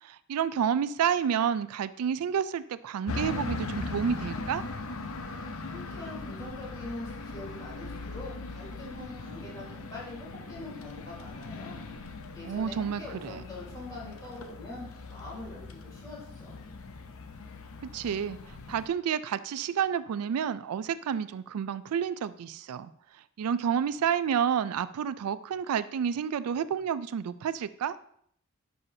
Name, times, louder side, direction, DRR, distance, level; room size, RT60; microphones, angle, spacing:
voice 1, 0.0-4.6 12.4-13.4 17.8-18.4 18.7-22.9 23.4-28.0, right 8 dB, 85° right, 15 dB, 0.3 m, -30 dB
sound 1, 3.1-18.9, left 3 dB, 65° left, 0.7 m, -40 dB
voice 2, 5.7-11.8 12.3-16.6, left 2 dB, 15° left, -7 dB, 3.4 m, -43 dB
12.0 x 5.5 x 2.7 m, 0.66 s
head